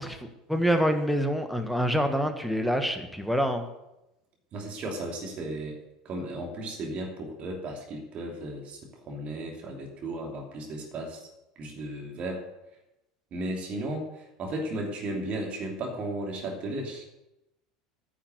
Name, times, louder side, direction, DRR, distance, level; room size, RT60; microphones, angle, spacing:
voice 1, 0.0-3.6, equal, ahead, 6 dB, 1.4 m, -26 dB
voice 2, 4.5-5.8 6.0-8.8 9.1-11.3 11.6-12.4 13.3-17.0, right 1 dB, 40° right, 2 dB, 2.9 m, -35 dB
10.0 x 6.7 x 8.0 m, 0.92 s
figure-of-eight pair, 75°, 3 cm